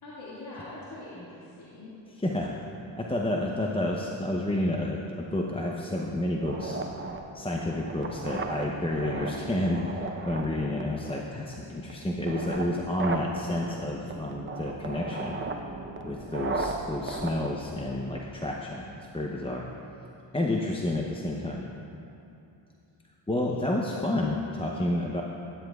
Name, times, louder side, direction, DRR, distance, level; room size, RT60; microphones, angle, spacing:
voice 1, 0.0-1.9 23.4-23.7, left 2 dB, 60° left, -9 dB, 2.2 m, -43 dB
voice 2, 2.2-2.5 3.0-6.8 7.3-15.4 16.0-19.6 20.3-21.6 23.3-25.2, left 1 dB, 10° left, -1 dB, 0.7 m, -30 dB
sound 1, 6.4-18.4, right 3 dB, 25° right, 0.7 m, -36 dB
12.5 x 11.5 x 2.4 m, 2.8 s
cardioid pair, 70°, 46 cm